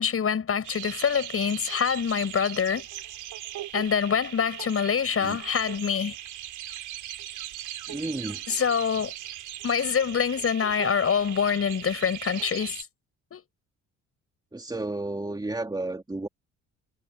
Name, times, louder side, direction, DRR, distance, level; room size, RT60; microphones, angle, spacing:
voice 1, 0.0-2.9 3.7-6.1 8.5-9.1 9.6-12.8 13.3-13.4, left 7 dB, 50° left, 7.7 m, -25 dB
sound 1, 0.6-12.8, right 12 dB, 80° right, 6.0 m, -39 dB
voice 2, 7.9-8.4 14.5-16.3, right 2 dB, 15° right, 2.7 m, -32 dB
cardioid pair, 90°, 30 cm